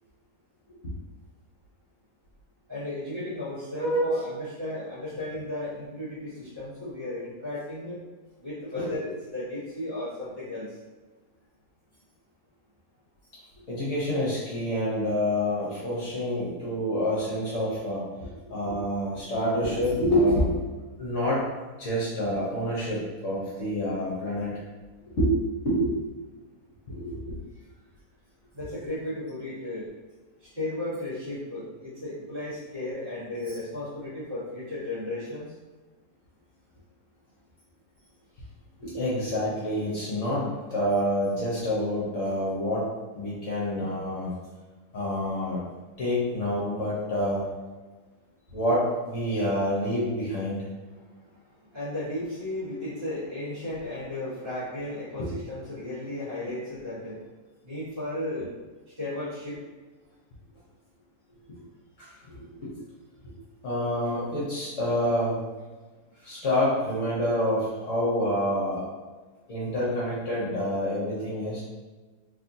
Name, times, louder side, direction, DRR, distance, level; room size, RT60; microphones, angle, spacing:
voice 1, 2.7-8.0 8.4-10.8 28.5-29.9 30.4-35.5 50.9-51.4 51.7-57.3 57.6-58.5 59.0-59.6, left 1 dB, 35° right, -10 dB, 1.6 m, -35 dB
voice 2, 3.8-4.2 8.7-8.9 13.7-20.6 21.0-21.4 21.8-24.6 25.1-25.3 25.6-25.9 26.9-27.4 38.8-42.9 43.1-44.3 44.9-45.6 46.0-47.4 48.5-50.6 55.2-55.3 61.5-61.6 62.0-62.7 63.6-65.4 66.2-68.8 69.5-71.6, equal, 55° left, -7 dB, 1.2 m, -27 dB
4.1 x 3.0 x 2.6 m, 1.3 s
omnidirectional pair, 1.8 m